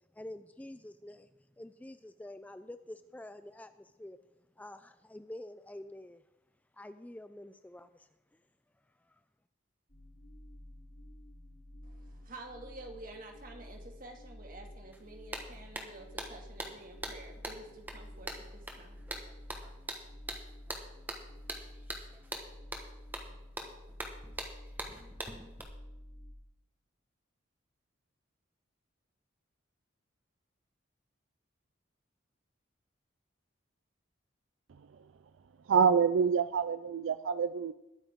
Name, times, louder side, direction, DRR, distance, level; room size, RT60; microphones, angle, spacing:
voice 1, 0.1-1.3 1.6-4.2 4.6-6.2 6.7-8.1 9.1-9.2, left 1 dB, 10° left, 11 dB, 0.3 m, -47 dB
sound 1, 9.9-26.3, left 1 dB, 40° left, 4.9 m, -51 dB
voice 2, 11.8-19.0, right 2 dB, 45° right, 2 dB, 2.1 m, -50 dB
sound 2, 14.9-15.0 15.3-25.6, right 1 dB, 10° right, 1.3 m, -42 dB
voice 3, 35.7-37.7, right 6 dB, 80° right, 12 dB, 0.4 m, -26 dB
21.0 x 9.0 x 3.6 m, 0.93 s
head